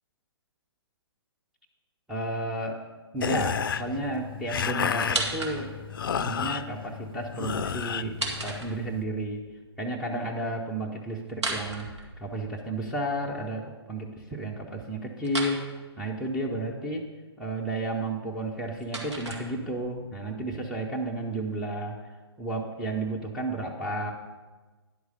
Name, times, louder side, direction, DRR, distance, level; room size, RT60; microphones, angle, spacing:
voice 1, 2.1-2.8 3.1-5.7 6.1-9.4 9.8-17.1 17.4-24.1, right 1 dB, 5° right, -3 dB, 0.6 m, -32 dB
Content warning, 3.2-9.0, left 7 dB, 50° left, 0.4 m, -32 dB
sound 1, 5.0-6.0 7.9-9.2 11.3-12.6 15.2-15.6 18.3-19.9, right 2 dB, 80° right, 2.0 m, -34 dB
10.5 x 4.7 x 6.5 m, 1.3 s
figure-of-eight pair, 125°, 14 cm